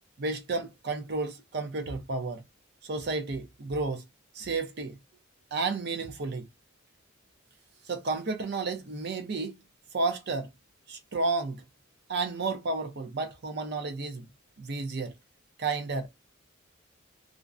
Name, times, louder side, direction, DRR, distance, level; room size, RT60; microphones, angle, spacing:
voice 1, 0.2-2.4 2.9-4.0 4.3-5.0 5.5-6.5 7.9-9.6 9.9-10.5 10.9-11.6 12.1-14.3 14.6-15.1 15.6-16.1, right 3 dB, 50° right, 0.6 m, -31 dB
2.4 x 2.1 x 2.5 m
head